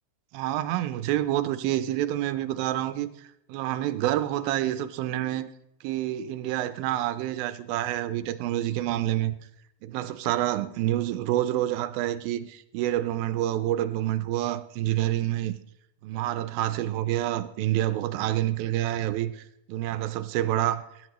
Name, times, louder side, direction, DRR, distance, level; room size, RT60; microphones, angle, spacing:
voice 1, 0.3-3.1 3.5-5.5 5.8-9.3 9.8-15.6 16.0-20.8, right 13 dB, 80° right, 2.5 m, -28 dB
20.5 x 11.0 x 3.1 m
omnidirectional pair, 4.3 m